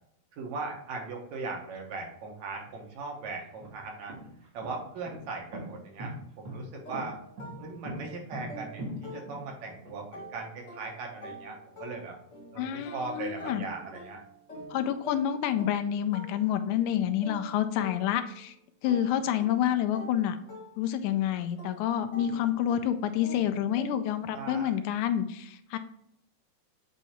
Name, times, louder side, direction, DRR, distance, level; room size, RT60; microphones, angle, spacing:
voice 1, 0.3-4.2 4.5-7.2 7.6-12.2 12.5-14.2 24.3-24.8, right 3 dB, 70° right, 1 dB, 2.3 m, -39 dB
sound 1, 2.6-2.7 3.4-9.9, equal, 50° right, 1.7 m, -41 dB
sound 2, 6.8-9.7 10.1-18.5 18.8-24.3, right 1 dB, 50° left, 0.8 m, -47 dB
voice 2, 12.6-13.6 14.7-18.5 18.8-20.4 20.8-25.8, left 10 dB, 85° left, 8 dB, 2.0 m, -28 dB
8.1 x 2.8 x 4.2 m, 0.70 s
omnidirectional pair, 3.4 m